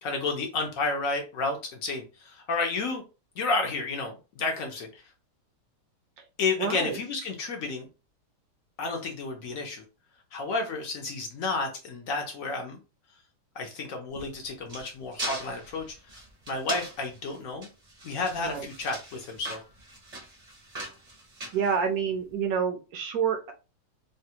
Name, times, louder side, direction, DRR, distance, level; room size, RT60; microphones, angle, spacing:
voice 1, 0.0-3.0 3.4-4.9 6.4-7.9 8.8-9.8 10.3-12.8 13.6-16.2 16.5-17.7 18.0-19.6, left 3 dB, 65° left, 2 dB, 0.9 m, -31 dB
voice 2, 6.6-7.0 18.4-18.7 21.5-23.5, right 7 dB, 70° right, 4 dB, 1.0 m, -28 dB
sound 1, 14.1-22.3, right 1 dB, 35° right, 0.6 m, -40 dB
3.3 x 2.2 x 2.8 m, 0.31 s
omnidirectional pair, 1.8 m